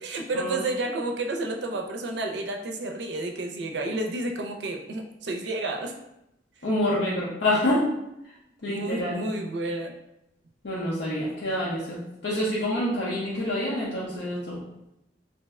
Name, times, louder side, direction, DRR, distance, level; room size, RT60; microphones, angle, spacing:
voice 1, 0.0-5.9 8.7-9.9, right 2 dB, 70° right, 2 dB, 0.4 m, -31 dB
voice 2, 6.6-7.8 8.6-9.3 10.6-14.6, left 1 dB, 80° left, -7 dB, 0.6 m, -27 dB
2.6 x 2.1 x 3.5 m, 0.85 s
head